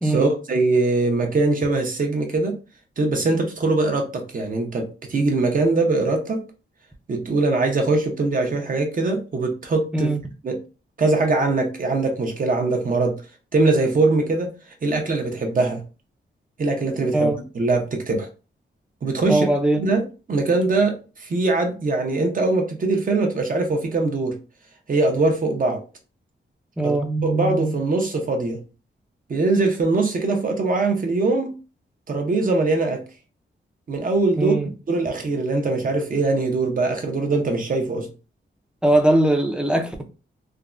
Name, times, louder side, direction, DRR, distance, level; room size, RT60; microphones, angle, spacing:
voice 1, 0.0-2.6 3.0-6.4 7.1-10.1 10.4-10.6 11.0-13.2 13.5-14.5 14.8-15.8 16.6-17.3 17.5-18.3 19.0-19.5 19.8-20.0 20.3-24.4 24.9-25.8 26.8-27.0 27.2-28.6 29.3-31.5 32.1-33.0 33.9-34.5 34.9-38.1, right 3 dB, 45° right, 3 dB, 0.6 m, -22 dB
voice 2, 19.3-19.8 26.8-27.8 34.4-34.7 38.8-40.0, right 1 dB, 5° right, 5 dB, 0.4 m, -21 dB
3.3 x 2.0 x 2.4 m, 0.33 s
wide cardioid pair, 160°, 20 cm